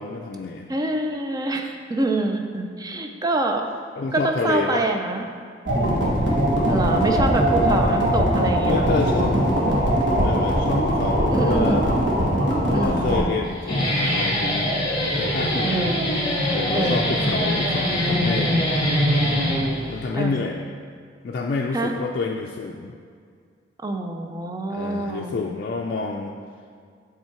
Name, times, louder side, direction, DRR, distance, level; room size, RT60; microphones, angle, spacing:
voice 1, 0.0-0.7 4.0-4.9 8.7-9.4 10.1-11.9 12.7-15.8 16.5-18.6 19.9-20.7 21.2-23.0 24.7-26.3, left 4 dB, 55° left, 0 dB, 0.4 m, -28 dB
voice 2, 0.7-3.7 4.1-5.3 5.8-6.0 6.7-8.9 11.3-11.9 12.7-13.1 15.6-16.0 16.7-17.1 20.1-20.4 21.7-21.9 23.8-25.4, right 2 dB, 20° right, 4 dB, 0.4 m, -26 dB
sound 1, 5.7-13.2, equal, 75° right, 1.3 m, -21 dB
Guitar, 13.4-20.1, equal, 25° left, 1.6 m, -23 dB
7.5 x 3.6 x 4.4 m, 2.1 s
head